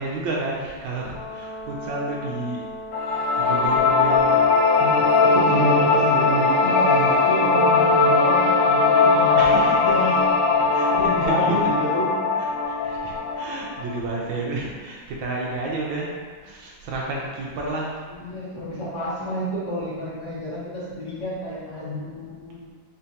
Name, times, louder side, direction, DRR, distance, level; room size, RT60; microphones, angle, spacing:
voice 1, 0.0-2.7 3.0-4.4 9.3-10.2 10.6-11.6 12.4-16.1 16.4-18.0, right 2 dB, 85° right, -3 dB, 1.4 m, -31 dB
Brass instrument, 1.1-9.1, equal, 55° right, 0.4 m, -38 dB
sound 1, 2.9-14.0, left 4 dB, 80° left, 1.3 m, -19 dB
voice 2, 4.8-10.2 10.9-12.2 18.1-22.6, equal, 45° left, -8 dB, 1.5 m, -28 dB
4.4 x 3.4 x 2.7 m, 1.5 s
omnidirectional pair, 2.1 m